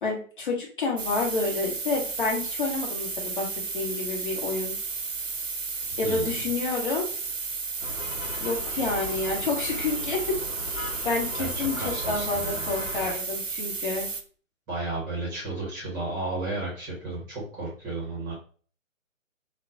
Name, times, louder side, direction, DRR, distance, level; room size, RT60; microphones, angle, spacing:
voice 1, 0.0-3.5 3.7-4.7 6.0-7.1 8.4-10.4 10.7-10.8 11.0-14.1, left 3 dB, 40° left, -2 dB, 1.0 m, -29 dB
sound 1, 1.0-14.2, right 4 dB, 70° right, 0.7 m, -33 dB
voice 2, 5.9-6.3 11.4-11.5 11.8-12.7 14.7-18.3, right 2 dB, 15° right, -5 dB, 0.9 m, -33 dB
sound 2, 7.8-13.1, left 3 dB, 80° left, 0.8 m, -38 dB
3.9 x 2.2 x 2.5 m, 0.41 s
figure-of-eight pair, 135°, 40 cm